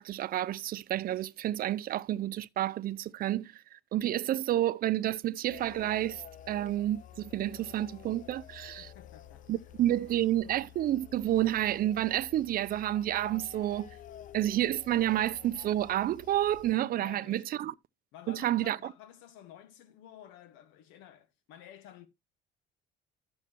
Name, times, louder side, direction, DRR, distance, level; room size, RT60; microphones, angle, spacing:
voice 1, 0.0-8.9 9.5-13.9 14.3-17.7 18.3-18.9, right 13 dB, 50° right, 0.5 m, -30 dB
sound 1, 5.5-16.7, left 11 dB, 40° left, 0.5 m, -51 dB
voice 2, 8.8-9.7 16.9-17.7 18.1-22.1, left 10 dB, 85° left, 1.4 m, -52 dB
11.5 x 7.1 x 2.9 m
cardioid pair, 115°, 20 cm